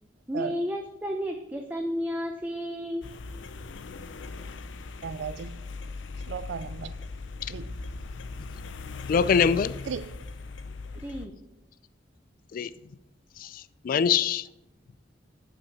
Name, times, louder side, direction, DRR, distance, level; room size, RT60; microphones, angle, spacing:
voice 1, 0.3-3.1 11.0-11.3, equal, 10° right, 0.6 m, -32 dB
sound 1, 3.0-11.3, left 4 dB, 90° left, 0.6 m, -39 dB
voice 2, 5.0-5.6 6.3-7.0 7.5-7.7 9.9-10.1, right 6 dB, 75° right, 0.3 m, -35 dB
voice 3, 9.1-9.7 12.5-12.7 13.4-14.5, left 6 dB, 50° left, 0.3 m, -24 dB
6.9 x 6.2 x 6.5 m
head